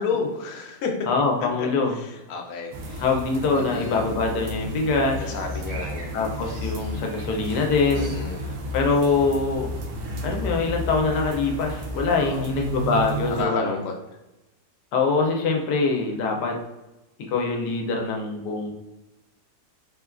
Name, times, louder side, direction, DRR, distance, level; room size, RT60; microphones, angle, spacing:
voice 1, 0.0-1.1 1.6-1.7 2.3-3.0 3.6-4.0 5.3-6.1 7.9-8.4 12.2-12.5 13.3-13.9, left 5 dB, 70° left, 1 dB, 0.9 m, -30 dB
voice 2, 1.1-1.9 3.0-5.3 6.1-8.2 8.7-9.7 10.2-13.8 14.9-16.6 17.3-18.7, left 4 dB, 85° left, 2 dB, 1.2 m, -24 dB
sound 1, 2.7-13.4, right 1 dB, 70° right, 0.7 m, -32 dB
3.5 x 2.2 x 2.3 m, 0.97 s
omnidirectional pair, 1.7 m